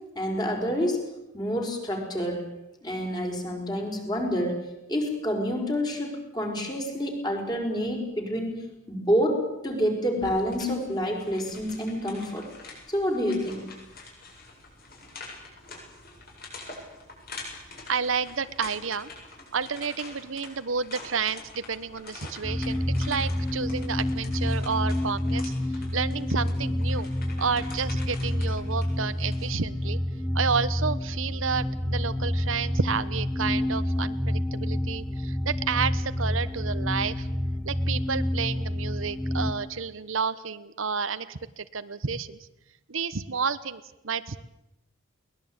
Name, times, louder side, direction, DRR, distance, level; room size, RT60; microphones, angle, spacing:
voice 1, 0.2-1.0 1.3-2.5 2.8-12.5 12.9-13.6, equal, 20° left, 2 dB, 5.2 m, -28 dB
sound 1, 10.2-29.6, left 3 dB, 45° left, 7.9 m, -46 dB
voice 2, 17.9-19.1 19.5-27.1 27.4-30.0 30.3-37.3 37.6-42.4 42.9-44.4, right 5 dB, 70° right, 13 dB, 1.0 m, -30 dB
sound 2, 22.4-39.5, left 1 dB, 5° left, 1.1 m, -28 dB
22.0 x 20.0 x 8.9 m, 0.92 s
head